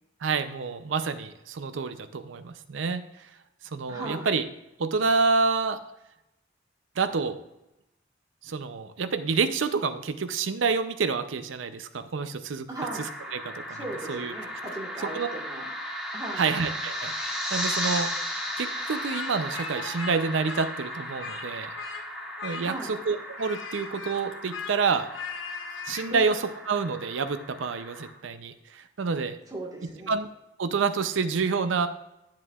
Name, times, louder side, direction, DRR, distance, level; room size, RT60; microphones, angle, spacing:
voice 1, 0.2-3.0 3.7-4.4 4.8-5.8 7.0-7.4 8.4-12.7 13.3-13.8 14.1-14.3 15.1-15.3 16.4-18.1 18.6-21.8 22.4-25.1 25.9-26.4 26.7-29.4 30.1-30.3 30.6-31.9, right 4 dB, 80° right, 11 dB, 0.5 m, -28 dB
voice 2, 3.9-4.3 12.7-13.0 13.7-15.7 16.1-16.5 22.6-23.0 26.1-26.3 29.5-30.2, right 2 dB, 20° right, -2 dB, 1.5 m, -37 dB
sound 1, 12.8-28.1, equal, 5° right, 1.2 m, -36 dB
Speech, 16.4-17.4 17.6-18.0 18.8-20.2 20.4-21.5 21.8-22.0 22.4-23.0 23.4-26.1, left 5 dB, 90° left, 1.0 m, -40 dB
9.8 x 7.5 x 2.4 m, 0.90 s
head